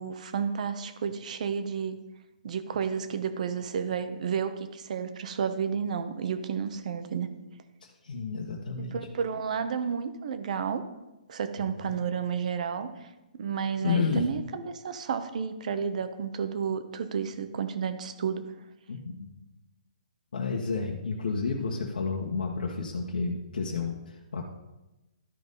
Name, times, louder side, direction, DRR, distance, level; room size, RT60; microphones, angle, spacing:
voice 1, 0.0-2.0 2.4-7.3 8.8-10.8 11.3-12.9 13.4-18.4, right 7 dB, 55° right, 10 dB, 1.0 m, -31 dB
voice 2, 7.8-9.0 11.6-11.9 13.8-14.3 18.9-19.3 20.3-24.4, left 5 dB, 75° left, -1 dB, 1.3 m, -31 dB
13.0 x 5.4 x 4.1 m, 1.0 s
hypercardioid pair, 150°, 5 cm